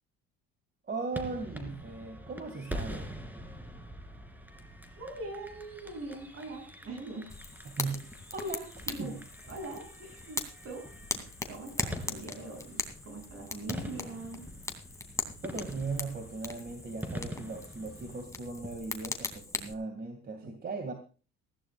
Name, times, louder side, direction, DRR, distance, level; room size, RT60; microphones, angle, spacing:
voice 1, 0.9-3.1 7.7-9.1 15.4-20.9, right 3 dB, 35° right, 6 dB, 2.3 m, -38 dB
sound 1, 1.1-18.2, equal, 5° right, 2.8 m, -44 dB
voice 2, 5.0-7.3 8.9-9.2 9.5-10.4 10.6-10.9 11.5-14.4, right 2 dB, 50° right, 4 dB, 7.9 m, -42 dB
Fire, 7.3-19.7, left 2 dB, 10° left, 2.8 m, -40 dB
19.0 x 15.5 x 2.5 m, 0.35 s
cardioid pair, 100°, 29 cm